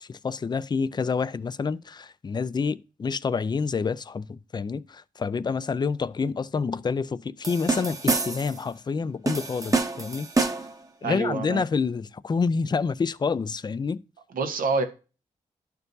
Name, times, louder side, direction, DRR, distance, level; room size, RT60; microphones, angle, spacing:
voice 1, 0.0-10.3 11.0-14.0, left 5 dB, 30° left, 0.4 m, -28 dB
sound 1, 7.4-8.6 9.3-10.8, right 3 dB, 25° right, 0.9 m, -27 dB
voice 2, 11.0-11.6 14.3-14.8, right 4 dB, 85° right, 1.1 m, -26 dB
12.0 x 4.5 x 2.7 m
cardioid pair, 70°, 14 cm